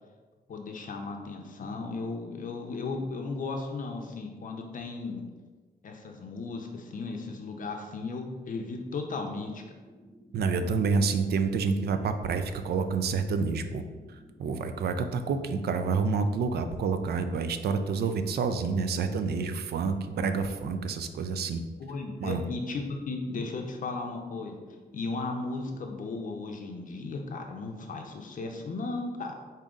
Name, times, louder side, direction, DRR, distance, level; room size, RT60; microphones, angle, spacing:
voice 1, 0.5-5.2 5.8-9.6 21.8-24.6 24.9-29.3, left 3 dB, 50° left, 3 dB, 0.6 m, -35 dB
sound 1, 8.7-28.6, right 1 dB, 25° right, 1.2 m, -54 dB
voice 2, 10.3-13.8 14.4-21.6 22.2-22.4, right 5 dB, 70° right, 9 dB, 0.4 m, -28 dB
5.0 x 2.7 x 3.6 m, 1.4 s
cardioid pair, 110°, 17 cm